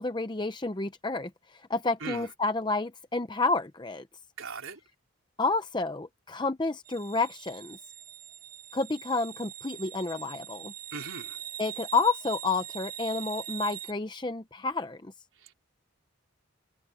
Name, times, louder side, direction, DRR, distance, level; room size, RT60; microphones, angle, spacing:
voice 1, 0.0-4.0 5.4-7.8 8.7-10.7 11.6-15.1, left 3 dB, 20° left, 0.6 m, -30 dB
voice 2, 4.4-4.8 10.9-11.4 15.3-15.5, right 4 dB, 70° right, 3.9 m, -39 dB
sound 1, 6.8-13.9, right 11 dB, 45° right, 1.3 m, -42 dB
head